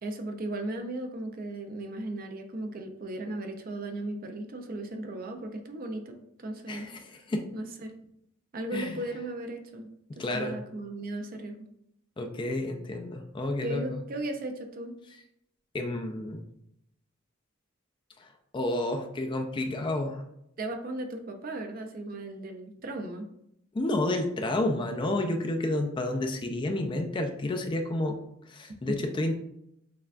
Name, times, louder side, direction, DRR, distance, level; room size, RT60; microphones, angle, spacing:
voice 1, 0.0-6.9 7.5-7.9 8.5-11.7 13.6-15.0 20.6-23.3, right 1 dB, 45° right, 5 dB, 0.5 m, -36 dB
voice 2, 6.7-7.5 8.7-9.0 10.1-10.5 12.2-14.0 15.7-16.4 18.2-20.2 23.7-28.2 28.5-29.3, left 1 dB, 25° left, 5 dB, 0.3 m, -30 dB
6.6 x 2.2 x 2.4 m, 0.78 s
head